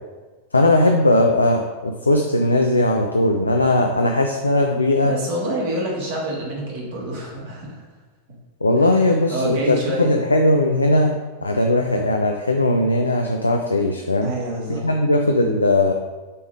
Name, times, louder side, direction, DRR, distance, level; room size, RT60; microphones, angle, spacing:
voice 1, 0.5-5.1 8.6-11.1 11.4-14.3 14.7-15.9, left 1 dB, 80° left, 3 dB, 0.5 m, -18 dB
voice 2, 5.0-7.8 8.8-10.1 14.2-14.9, right 1 dB, 50° right, -3 dB, 2.1 m, -27 dB
6.8 x 3.6 x 4.8 m, 1.3 s
figure-of-eight pair, 90°, 0 cm